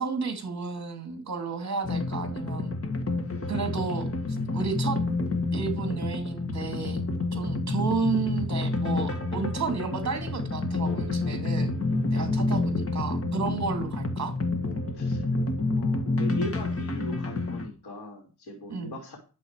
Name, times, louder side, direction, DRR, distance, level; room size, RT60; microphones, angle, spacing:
voice 1, 0.0-2.7 3.5-4.1 4.5-5.0 5.5-7.0 7.3-11.7 12.1-14.3 18.7-19.0, right 5 dB, 45° right, 6 dB, 2.6 m, -32 dB
sound 1, 1.8-17.7, left 2 dB, 35° left, 1.9 m, -29 dB
voice 2, 14.9-15.3 15.7-19.2, left 1 dB, 90° left, 1 dB, 3.1 m, -39 dB
11.5 x 7.4 x 4.7 m, 0.34 s
wide cardioid pair, 145°, 38 cm